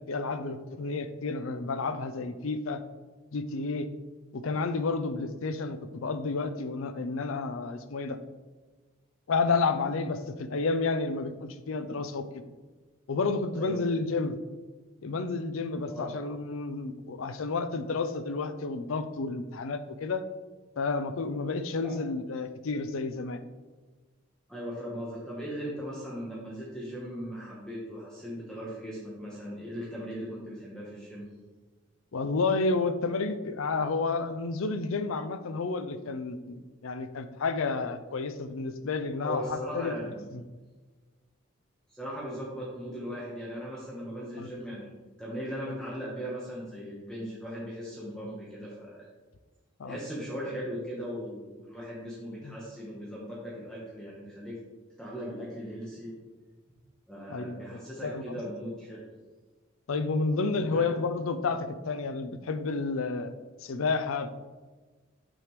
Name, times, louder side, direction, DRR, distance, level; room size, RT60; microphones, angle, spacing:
voice 1, 0.1-2.8 3.3-3.9 4.3-8.2 9.3-12.4 13.1-14.4 15.0-20.2 20.8-23.4 32.1-39.9 40.3-40.4 44.4-44.5 49.8-50.0 52.4-52.5 57.3-58.2 59.9-63.3 63.6-64.4, left 4 dB, 80° left, 11 dB, 0.5 m, -31 dB
voice 2, 15.8-16.2 21.8-21.9 24.5-31.3 39.2-40.3 41.9-44.9 45.2-49.1 49.8-54.6 55.0-56.1 57.1-59.0 60.7-60.9, equal, 5° left, -6 dB, 1.1 m, -38 dB
6.7 x 6.1 x 3.1 m, 1.3 s
head